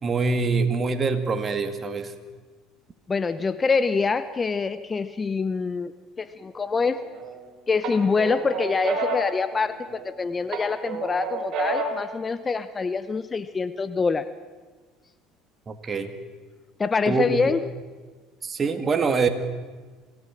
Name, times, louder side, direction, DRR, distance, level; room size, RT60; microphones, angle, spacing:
voice 1, 0.0-2.1 15.7-16.1 17.1-17.5 18.4-19.3, right 4 dB, 35° right, 7 dB, 2.3 m, -24 dB
voice 2, 3.1-5.9 6.2-7.0 7.7-14.3 16.8-17.6, left 4 dB, 25° left, 13 dB, 0.8 m, -25 dB
sound 1, 6.8-7.4 7.8-10.1 10.5-12.1, right 3 dB, 55° right, 4.8 m, -30 dB
26.0 x 16.5 x 6.1 m, 1.4 s
hypercardioid pair, 75°, 0 cm